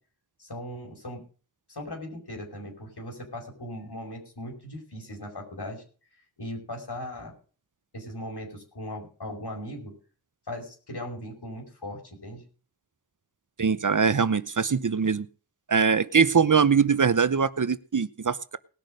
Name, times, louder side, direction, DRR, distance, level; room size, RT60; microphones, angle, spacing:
voice 1, 0.4-1.2 1.7-5.8 6.4-7.3 7.9-9.9 10.5-12.4, left 1 dB, 75° left, 0 dB, 5.4 m, -38 dB
voice 2, 13.6-15.3 15.7-18.6, right 6 dB, 50° right, 16 dB, 0.8 m, -22 dB
19.0 x 6.7 x 6.4 m, 0.39 s
wide cardioid pair, 60°, 40 cm